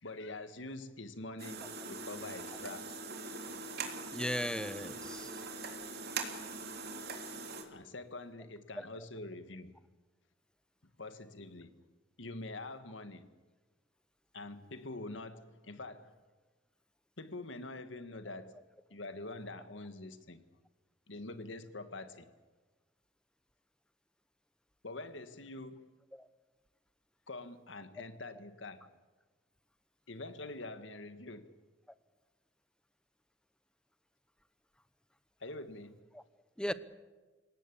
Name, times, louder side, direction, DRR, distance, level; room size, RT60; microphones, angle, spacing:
voice 1, 0.0-3.0 7.7-9.7 11.0-11.7 12.2-13.3 14.3-16.1 17.2-18.6 18.9-20.4 21.1-22.3 24.8-25.8 27.3-28.9 30.1-31.5 35.4-36.0, left 2 dB, 80° left, 1.7 m, -45 dB
sound 1, 1.4-7.6, right 4 dB, 60° right, 3.2 m, -42 dB
voice 2, 4.1-5.4 8.8-9.0 26.1-26.3 36.1-36.2 36.6-36.7, left 1 dB, 5° left, 0.9 m, -37 dB
27.5 x 18.0 x 8.5 m
head